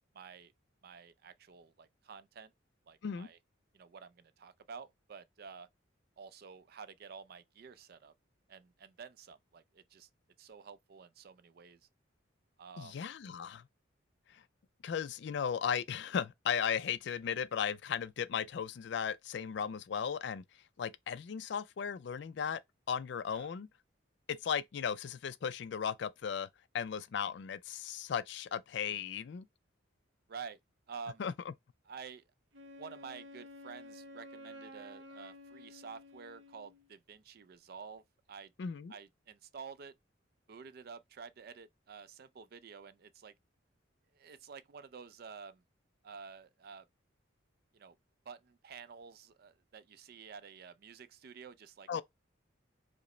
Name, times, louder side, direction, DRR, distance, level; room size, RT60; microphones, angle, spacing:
voice 1, 0.1-0.5 0.8-2.5 2.9-3.4 3.7-5.7 6.2-8.1 8.5-10.1 10.4-11.8 12.6-13.0 23.3-23.5 30.3-30.6 30.9-31.3 31.9-32.2 32.8-38.5 38.9-40.0 40.5-43.3 44.1-45.6 46.0-46.8 47.7-48.0 48.3-52.0, right 6 dB, 50° right, 0.4 m, -50 dB
voice 2, 12.8-13.7 14.3-14.4 14.8-20.4 20.8-22.6 22.9-23.7 24.3-26.5 26.7-29.5 31.2-31.3 38.6-38.9 51.9-52.0, left 7 dB, 60° left, 0.3 m, -36 dB
Wind instrument woodwind instrument, 32.5-36.9, left 1 dB, 80° right, 0.8 m, -52 dB
4.9 x 2.0 x 3.1 m
head